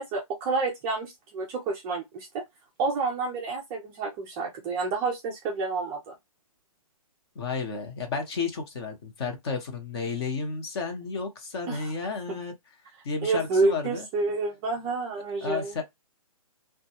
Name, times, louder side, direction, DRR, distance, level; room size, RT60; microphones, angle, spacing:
voice 1, 0.0-2.4 2.8-6.1 11.7-11.9 12.3-12.4 13.2-15.7, right 3 dB, 15° right, 0.3 m, -29 dB
voice 2, 7.3-12.5 13.0-14.1 15.4-15.8, left 5 dB, 45° left, 0.8 m, -32 dB
2.2 x 2.2 x 2.8 m
hypercardioid pair, 145°, 18 cm